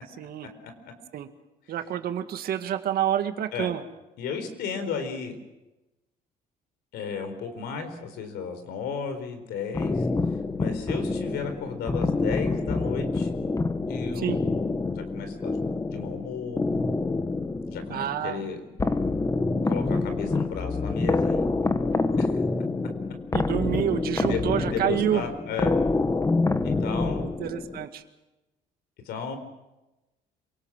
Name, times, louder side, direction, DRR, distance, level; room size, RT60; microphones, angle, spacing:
voice 1, 0.2-0.5 1.1-1.3 1.7-3.8 14.2-14.4 17.9-18.4 23.3-25.2 27.4-28.0, right 10 dB, 65° right, 8 dB, 2.0 m, -28 dB
voice 2, 4.2-5.4 6.9-10.1 10.6-13.3 13.9-14.4 14.9-16.6 17.7-18.6 19.6-21.5 22.2-22.4 24.2-25.7 26.6-27.3 29.0-29.4, left 6 dB, 75° left, 8 dB, 4.1 m, -34 dB
sound 1, 9.7-27.9, left 3 dB, 20° left, 1.2 m, -27 dB
27.0 x 18.5 x 7.5 m, 1.0 s
cardioid pair, 110°, 17 cm